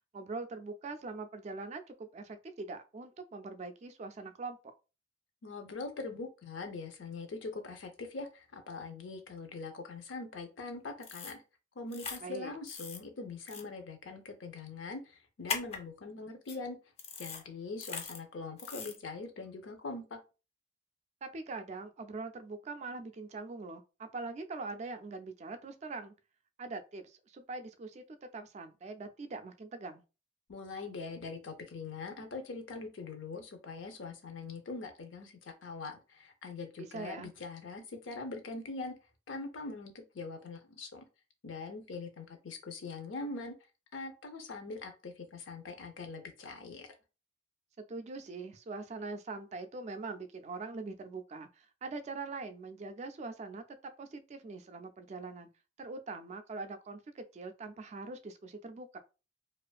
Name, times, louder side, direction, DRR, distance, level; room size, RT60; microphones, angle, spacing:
voice 1, 0.1-4.6 12.2-12.5 21.2-26.1 26.6-30.0 36.8-37.3 47.9-55.5 55.8-59.0, right 3 dB, 35° right, 0.3 m, -43 dB
voice 2, 5.4-11.4 11.8-16.8 17.2-20.2 30.5-38.9 39.3-41.1 41.4-43.5 43.9-46.9, left 3 dB, 90° left, 0.6 m, -42 dB
sound 1, 11.0-11.4 11.9-12.2 12.7-13.0 13.5-13.6 15.5-15.8 16.5-16.6 17.0-17.4 17.8-18.2 18.6-19.0, left 5 dB, 35° left, 0.4 m, -39 dB
2.4 x 2.4 x 2.2 m
head